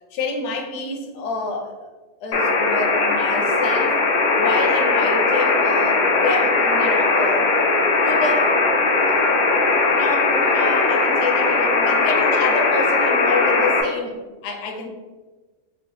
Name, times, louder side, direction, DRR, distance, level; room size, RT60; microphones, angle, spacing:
voice 1, 0.1-1.9 2.2-4.0 4.3-7.8 8.0-8.6 9.0-9.2 9.9-14.9, left 3 dB, 75° left, 3 dB, 0.9 m, -28 dB
sound 1, 2.3-13.8, left 3 dB, 55° left, 0.5 m, -19 dB
3.2 x 2.3 x 3.7 m, 1.3 s
omnidirectional pair, 1.2 m